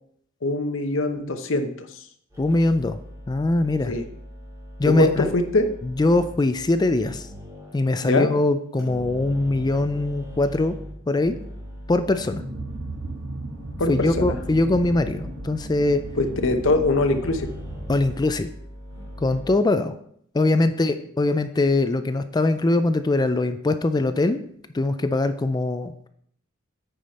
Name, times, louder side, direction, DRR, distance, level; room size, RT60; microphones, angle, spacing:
voice 1, 0.4-1.9 3.9-4.0 4.9-5.7 8.0-8.3 13.8-14.3 16.2-17.5 20.5-20.9, left 2 dB, 75° left, 6 dB, 0.9 m, -23 dB
sound 1, 2.3-8.1 8.8-19.5, equal, 15° right, 2.7 m, -40 dB
voice 2, 2.4-3.0 3.3-3.9 4.8-5.3 5.8-7.3 7.7-10.7 11.1-11.4 11.9-12.4 13.9-16.0 17.9-18.5 19.2-19.9 20.3-24.4 24.7-25.9, left 2 dB, 20° left, 10 dB, 0.3 m, -22 dB
sound 2, 12.0-18.5, right 2 dB, 65° right, 1.6 m, -36 dB
9.1 x 5.1 x 4.2 m, 0.66 s
head